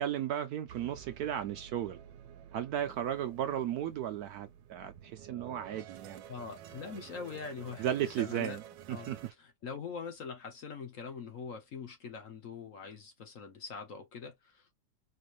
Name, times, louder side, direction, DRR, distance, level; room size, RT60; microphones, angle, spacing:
voice 1, 0.0-2.0 2.5-6.2 7.8-8.6 8.9-9.3, right 10 dB, 70° right, 0.9 m, -35 dB
sound 1, 0.7-9.3, right 10 dB, 90° right, 1.3 m, -51 dB
voice 2, 6.3-8.6 8.9-9.1 9.4-14.7, left 5 dB, 50° left, 1.2 m, -43 dB
4.4 x 3.2 x 2.4 m
omnidirectional pair, 2.0 m